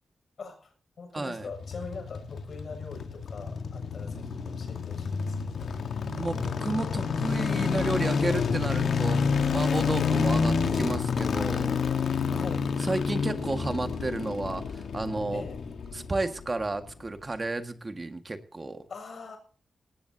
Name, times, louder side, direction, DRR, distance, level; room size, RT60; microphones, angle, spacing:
voice 1, 0.4-5.7 8.0-8.2 10.0-10.3 12.3-12.7 15.3-15.6 18.9-19.4, left 4 dB, 65° left, 5 dB, 7.2 m, -43 dB
voice 2, 1.1-1.5 6.0-9.2 9.5-11.8 12.8-15.4 15.9-18.8, right 2 dB, 30° right, 7 dB, 1.8 m, -32 dB
sound 1, 1.4-16.6 16.9-17.0, left 5 dB, 80° left, 1.5 m, -29 dB
18.5 x 18.0 x 2.9 m, 0.43 s
cardioid pair, 80°, 0 cm